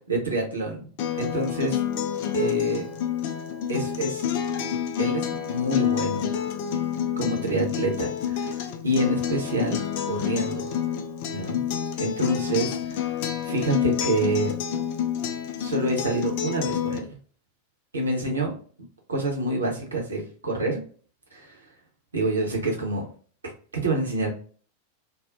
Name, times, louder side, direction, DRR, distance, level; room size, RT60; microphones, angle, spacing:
voice 1, 0.1-0.9 1.2-1.8 2.3-2.8 3.7-4.2 5.0-6.3 7.2-10.7 11.3-11.6 12.0-14.5 15.6-17.1 17.9-18.5 19.1-20.8 21.3-21.7 22.1-23.0 23.4-24.3, right 2 dB, 75° right, 0 dB, 0.8 m, -27 dB
Acoustic guitar, 1.0-17.0, left 9 dB, 50° left, 0.3 m, -28 dB
2.4 x 2.1 x 2.5 m, 0.43 s
figure-of-eight pair, 90°, 0 cm